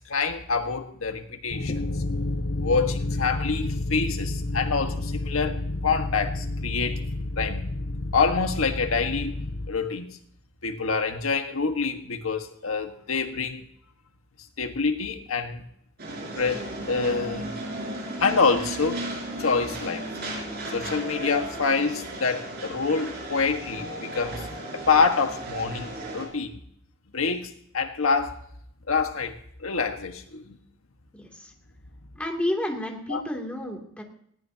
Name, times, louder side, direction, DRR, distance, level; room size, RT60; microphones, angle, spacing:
voice 1, 0.0-1.8 2.6-7.0 7.4-7.7 8.1-9.4 9.7-10.2 10.6-13.6 14.6-15.7 16.3-17.5 18.2-19.0 19.4-20.1 20.7-24.5 24.7-26.6 27.1-28.3 28.9-30.6 33.1-33.2, left 4 dB, 85° left, 6 dB, 1.5 m, -26 dB
sound 1, 1.5-9.7, left 2 dB, 50° left, 0.7 m, -30 dB
sound 2, 16.0-26.3, right 1 dB, 50° right, 5.9 m, -35 dB
voice 2, 31.1-31.5 32.2-34.0, left 1 dB, 5° left, 1 dB, 2.7 m, -31 dB
20.0 x 18.0 x 2.8 m, 0.69 s
head